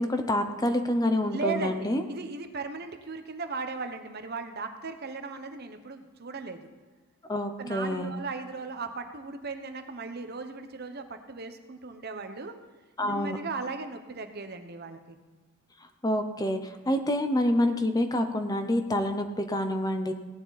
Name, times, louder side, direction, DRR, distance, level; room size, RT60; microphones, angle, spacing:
voice 1, 0.0-2.0 7.3-8.1 13.0-13.4 16.0-20.1, left 1 dB, 20° left, 7 dB, 0.7 m, -27 dB
voice 2, 1.3-6.7 7.6-12.5 13.0-15.2, right 3 dB, 50° right, 7 dB, 1.0 m, -37 dB
17.0 x 9.8 x 4.1 m, 1.4 s
head